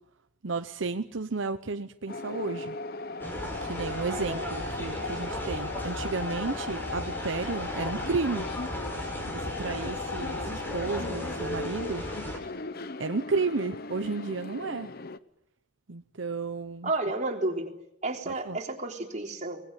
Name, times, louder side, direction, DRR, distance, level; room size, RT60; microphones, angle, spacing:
voice 1, 0.4-2.8 3.6-8.5 9.3-12.4 13.0-14.9 15.9-16.9 18.3-18.6, right 4 dB, 75° right, 9 dB, 0.9 m, -32 dB
sound 1, 2.1-15.2, left 3 dB, 50° left, 0.9 m, -37 dB
sound 2, 3.2-12.4, equal, 10° left, 5.4 m, -36 dB
voice 2, 4.1-4.5 16.8-17.7 18.0-19.6, right 2 dB, 40° right, 2 dB, 3.7 m, -31 dB
24.0 x 20.5 x 9.9 m, 0.80 s
head